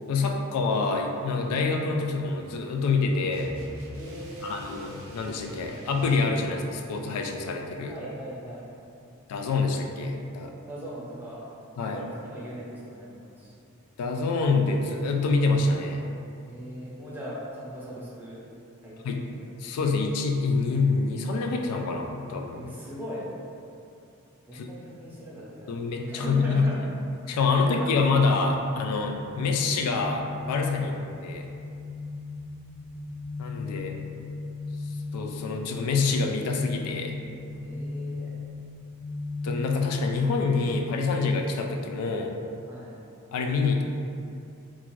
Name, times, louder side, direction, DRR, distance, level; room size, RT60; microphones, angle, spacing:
voice 1, 0.1-3.5 4.4-8.0 9.3-10.5 11.8-12.0 14.0-16.1 19.0-19.2 19.6-22.7 24.5-24.7 25.7-26.7 27.3-30.9 31.2-31.5 33.4-34.0 35.1-37.2 37.5-37.6 39.4-42.3 43.3-43.8, left 4 dB, 90° left, 8 dB, 0.3 m, -26 dB
sound 1, 3.3-6.4, equal, 65° right, 0.6 m, -43 dB
voice 2, 3.9-4.6 7.9-8.7 10.7-11.5 11.9-13.5 16.4-18.4 18.8-19.3 22.6-23.2 24.4-25.8 26.1-26.8 27.7-27.9 30.8-31.0 37.6-38.4 42.7-42.9, equal, 10° right, -7 dB, 0.5 m, -39 dB
sound 2, 28.7-40.2, left 3 dB, 15° left, 0.8 m, -37 dB
2.5 x 2.4 x 3.0 m, 2.6 s
head